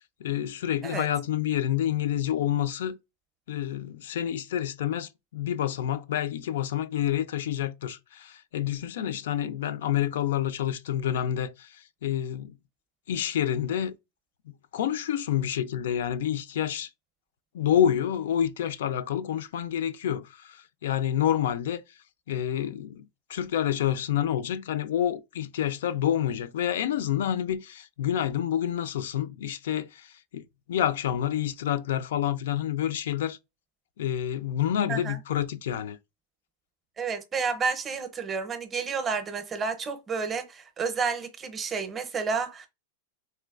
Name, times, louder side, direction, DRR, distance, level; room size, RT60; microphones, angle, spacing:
voice 1, 0.2-3.0 3.5-12.5 13.1-13.9 14.7-16.9 17.5-21.8 22.3-23.0 23.3-30.4 30.7-33.4 34.0-36.0, left 10 dB, 75° left, 0.3 m, -28 dB
voice 2, 37.0-42.7, right 5 dB, 20° right, 0.6 m, -30 dB
3.1 x 3.1 x 2.3 m
supercardioid pair, 145°, 0 cm